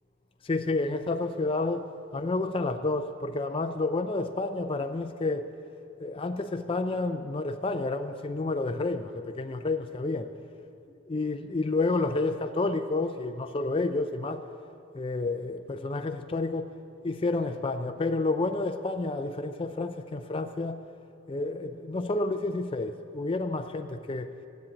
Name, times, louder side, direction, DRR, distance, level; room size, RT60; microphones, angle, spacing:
voice 1, 0.4-1.9 2.1-5.5 6.0-10.3 11.1-14.4 14.9-16.7 17.0-20.8 21.3-24.3, left 3 dB, 25° left, 7 dB, 0.4 m, -30 dB
12.5 x 7.2 x 8.9 m, 2.6 s
head